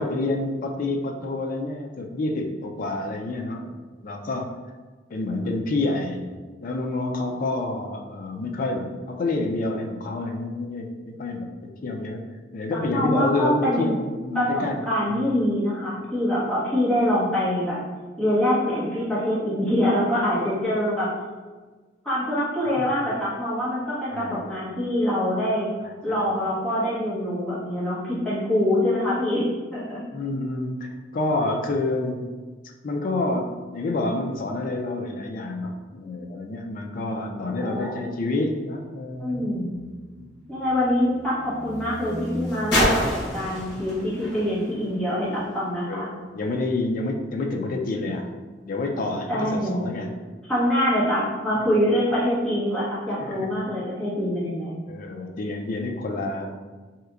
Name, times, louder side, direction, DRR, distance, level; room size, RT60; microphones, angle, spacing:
voice 1, 0.0-4.5 5.1-6.3 6.6-12.2 12.5-15.3 24.1-24.6 26.1-26.2 30.1-32.3 32.8-39.5 40.2-40.3 45.9-48.3 48.7-50.2 53.2-53.4 54.9-56.6, left 2 dB, 50° left, 3 dB, 0.4 m, -28 dB
voice 2, 12.7-13.9 14.3-17.8 18.2-21.1 22.0-25.7 26.0-29.4 29.7-30.0 37.3-37.9 39.2-39.7 40.5-46.1 49.3-49.8 50.5-54.8, equal, 5° left, -11 dB, 1.0 m, -24 dB
sound 1, 39.2-45.7 46.5-46.6, left 1 dB, 65° left, 1.0 m, -30 dB
3.2 x 2.9 x 2.4 m, 1.4 s
head